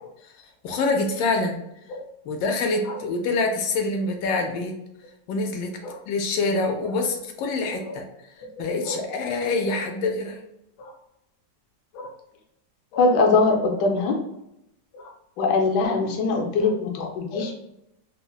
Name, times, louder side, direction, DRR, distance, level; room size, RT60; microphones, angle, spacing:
voice 1, 0.6-1.6 2.2-4.8 5.3-5.7 6.1-8.0 8.6-10.4, left 3 dB, 85° left, 3 dB, 1.3 m, -25 dB
voice 2, 12.9-14.2 14.9-17.5, left 3 dB, 70° left, 2 dB, 1.1 m, -22 dB
3.7 x 2.0 x 2.2 m, 0.83 s
omnidirectional pair, 2.0 m